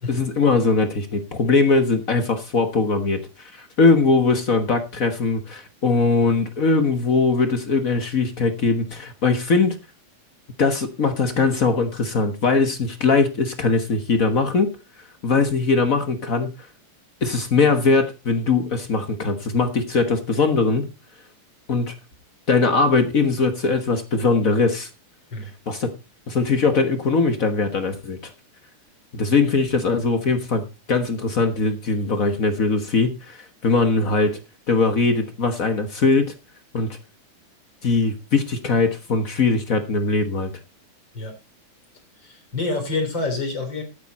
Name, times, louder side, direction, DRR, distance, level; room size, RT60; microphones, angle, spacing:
voice 1, 0.1-9.8 10.6-14.7 15.2-16.5 17.2-20.9 21.7-21.9 22.5-24.9 25.7-25.9 26.3-28.2 29.1-30.6 30.9-33.4 33.6-34.4 34.7-36.3 36.7-37.0 37.8-40.5, left 4 dB, 60° left, 7 dB, 0.8 m, -20 dB
voice 2, 42.2-43.8, left 3 dB, 35° left, 4 dB, 4.1 m, -28 dB
12.5 x 9.5 x 4.2 m, 0.28 s
omnidirectional pair, 3.6 m